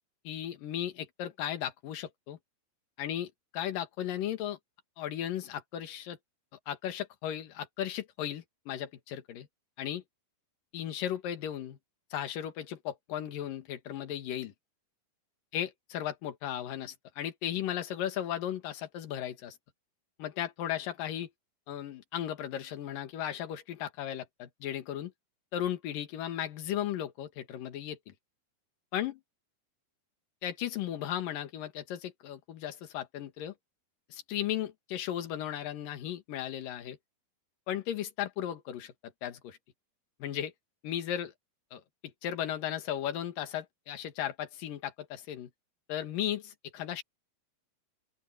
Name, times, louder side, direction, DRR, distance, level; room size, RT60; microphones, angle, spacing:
voice 1, 0.2-2.4 3.0-4.6 5.0-6.2 6.7-9.5 9.8-10.0 10.7-11.8 12.1-14.5 15.5-19.6 20.2-21.3 21.7-25.1 25.5-28.1 28.9-29.2 30.4-33.5 34.1-37.0 37.7-39.6 40.2-40.5 40.8-41.3 41.7-41.8 42.2-45.5 45.9-47.0, left 11 dB, 65° left, 3.2 m, -36 dB
open air
omnidirectional pair, 4.6 m